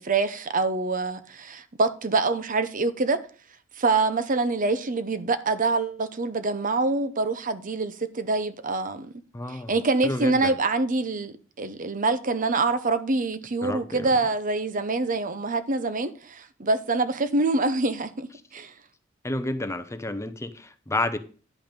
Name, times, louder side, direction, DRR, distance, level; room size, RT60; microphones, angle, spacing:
voice 1, 0.0-3.2 3.8-9.1 9.5-18.7, right 3 dB, 40° right, 0.7 m, -25 dB
voice 2, 9.3-9.8 10.0-10.6 13.6-14.1 19.2-21.2, left 2 dB, 15° left, 0.6 m, -30 dB
10.5 x 5.6 x 5.1 m
head